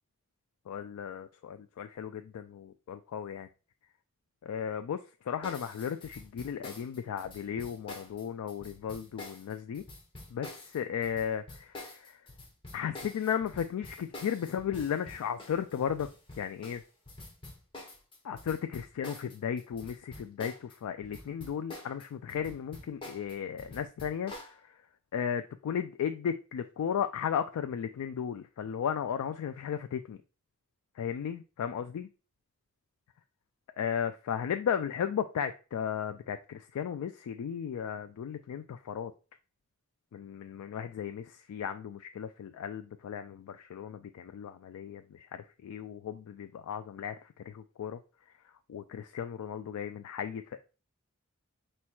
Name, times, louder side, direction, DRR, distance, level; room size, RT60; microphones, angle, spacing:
voice 1, 0.7-3.5 4.4-5.0 5.3-9.8 10.3-12.2 12.7-16.1 16.4-16.8 18.2-24.7 25.1-30.2 31.0-32.1 33.8-39.1 40.1-48.0 48.7-50.6, left 8 dB, 90° left, 9 dB, 0.3 m, -35 dB
sound 1, 5.4-20.8 21.0-24.5, left 2 dB, 25° left, 1.0 m, -47 dB
4.4 x 4.2 x 2.3 m, 0.33 s
head